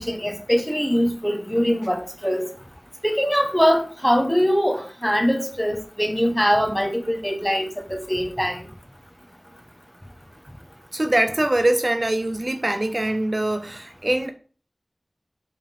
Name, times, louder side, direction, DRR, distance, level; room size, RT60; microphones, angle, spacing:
voice 1, 0.0-2.4 3.0-8.6, equal, 5° left, 1.3 m, -22 dB
voice 2, 10.9-14.3, right 1 dB, 45° right, 0.5 m, -23 dB
5.2 x 3.7 x 5.3 m
wide cardioid pair, 50°, 0 cm